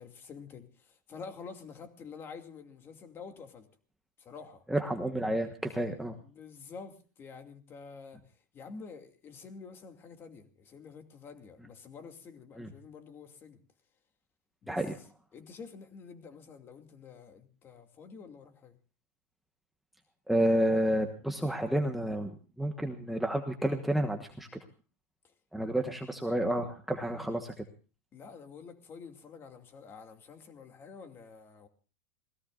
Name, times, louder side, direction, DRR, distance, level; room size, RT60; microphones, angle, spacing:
voice 1, 0.0-3.7 4.2-4.6 6.2-8.2 8.5-13.6 14.6-14.8 15.3-18.7 25.2-25.3 25.7-25.9 28.1-31.7, left 5 dB, 25° left, 2.5 m, -48 dB
voice 2, 4.7-6.2 12.6-12.7 14.7-14.9 20.3-22.3 22.6-24.5 25.5-27.6, right 1 dB, ahead, 1.3 m, -30 dB
27.5 x 18.5 x 2.5 m
supercardioid pair, 145°, 9 cm